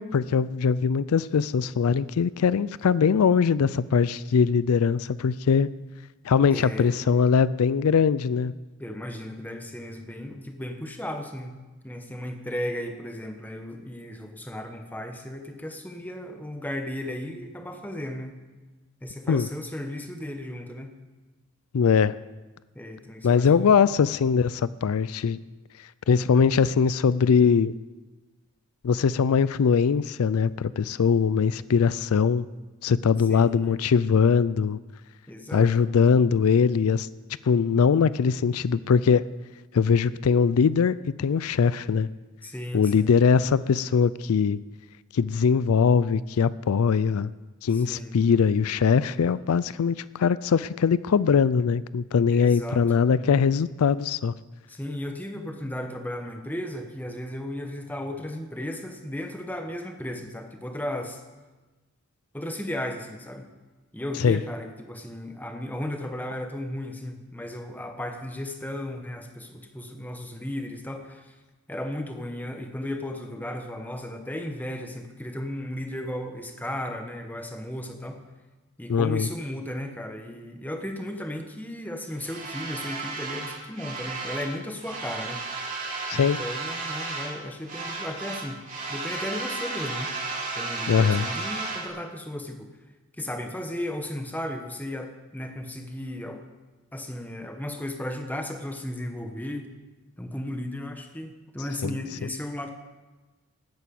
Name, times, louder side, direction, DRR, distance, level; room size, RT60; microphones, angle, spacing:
voice 1, 0.0-5.7 6.2-8.5 19.3-19.5 21.7-22.1 23.2-25.4 26.1-27.7 28.8-32.5 32.8-34.8 35.5-37.1 37.4-39.2 39.7-42.1 42.7-44.6 45.1-47.3 47.6-54.3 64.2-64.4 78.9-79.3 86.1-86.4 90.9-91.2 101.8-101.9, left 6 dB, 80° left, 18 dB, 0.4 m, -21 dB
voice 2, 6.5-7.0 8.8-11.6 11.8-18.4 19.0-21.0 22.7-23.7 31.5-31.8 33.2-33.8 35.3-35.7 42.4-43.1 47.7-48.2 52.3-52.8 54.7-61.2 62.3-63.5 63.9-71.4 71.7-78.2 78.8-85.5 86.1-88.6 88.9-90.2 90.6-92.7 93.2-96.4 96.9-99.7 100.2-102.7, left 1 dB, 10° left, 5 dB, 1.2 m, -35 dB
sound 1, 82.2-84.5 84.8-87.4 87.6-91.9, right 3 dB, 35° right, 3.4 m, -33 dB
13.0 x 9.2 x 8.6 m, 1.2 s
head